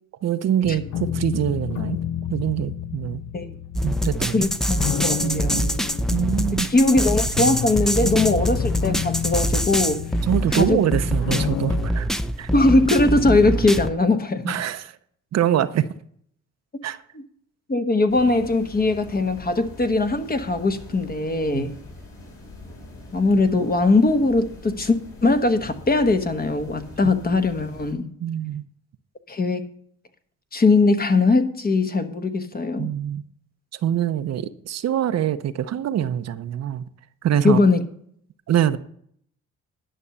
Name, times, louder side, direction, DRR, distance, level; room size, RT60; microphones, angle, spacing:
voice 1, 0.2-2.0 2.3-3.2 3.8-4.5 5.2-5.7 6.1-6.7 10.2-12.1 12.4-12.5 14.4-15.0 15.3-15.9 16.8-17.0 21.5-21.7 27.0-27.1 28.2-28.6 32.8-33.2 33.7-36.8 37.2-37.6 38.5-38.8, right 10 dB, 60° right, 0.7 m, -24 dB
sound 1, 0.6-11.9, left 9 dB, 75° left, 0.7 m, -31 dB
sound 2, 3.7-13.9, equal, ahead, 0.6 m, -25 dB
voice 2, 4.3-5.6 6.7-10.0 10.5-10.8 12.5-14.5 17.7-21.7 23.1-28.1 29.3-29.7 30.5-32.9 37.4-37.8, left 2 dB, 30° left, 1.2 m, -20 dB
sound 3, 18.1-27.9, left 2 dB, 50° left, 4.5 m, -42 dB
11.0 x 6.4 x 6.9 m
cardioid pair, 90°, 30 cm